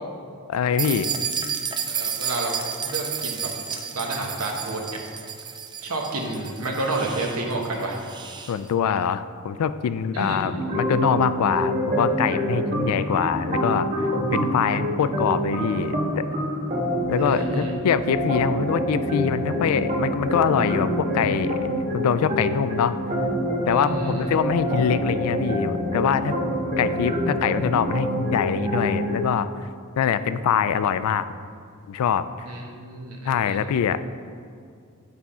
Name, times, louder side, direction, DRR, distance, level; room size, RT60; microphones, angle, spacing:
voice 1, 0.5-1.1 8.5-13.9 14.3-16.2 17.1-21.6 21.9-23.0 23.7-26.4 26.8-29.5 30.0-31.2 31.9-32.2 33.3-34.0, left 7 dB, 80° left, 14 dB, 0.3 m, -24 dB
sound 1, 0.8-8.6, right 7 dB, 20° right, 0.3 m, -31 dB
voice 2, 1.9-2.5 2.8-3.5 3.9-4.8 5.8-8.0 10.1-10.4 17.1-17.7 23.7-24.3 32.5-33.6, right 2 dB, 85° right, 0 dB, 1.0 m, -30 dB
sound 2, 10.5-29.2, equal, 35° right, 1.2 m, -26 dB
9.5 x 3.5 x 4.2 m, 2.3 s
head